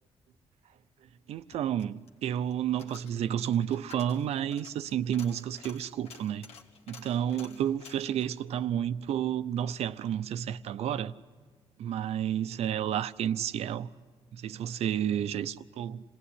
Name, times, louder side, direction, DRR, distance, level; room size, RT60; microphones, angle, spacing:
Coin (dropping), 1.3-9.7 10.1-10.2, left 5 dB, 85° left, 2.0 m, -53 dB
voice 1, 1.3-6.5 6.9-11.1 11.8-13.9 14.3-16.0, right 10 dB, 80° right, 0.7 m, -31 dB
27.5 x 19.0 x 9.9 m
cardioid pair, 150°, 11 cm